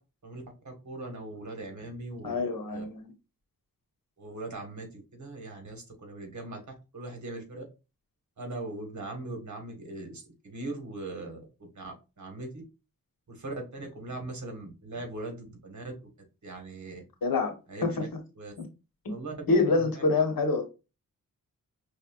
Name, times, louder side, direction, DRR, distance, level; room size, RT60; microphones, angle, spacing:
voice 1, 0.2-2.4 2.7-2.8 4.2-6.6 6.9-7.6 8.4-12.5 13.3-15.9 16.4-17.0 17.7-18.0 18.4-18.5 19.1-19.3 19.7-19.9, right 2 dB, 55° right, 1.4 m, -40 dB
voice 2, 2.2-3.1 17.2-17.5 17.8-17.9 18.6-18.7 19.0-19.1 19.5-20.7, left 3 dB, 90° left, 1.2 m, -26 dB
5.2 x 3.4 x 2.3 m
wide cardioid pair, 130°, 34 cm